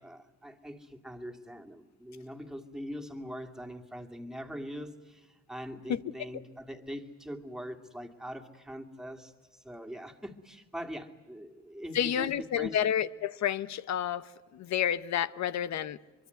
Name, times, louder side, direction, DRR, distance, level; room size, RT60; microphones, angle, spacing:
voice 1, 0.0-12.8, equal, ahead, 2.4 m, -42 dB
voice 2, 11.9-16.0, left 9 dB, 65° left, 0.9 m, -30 dB
24.0 x 24.0 x 9.4 m
cardioid pair, 90°, 30 cm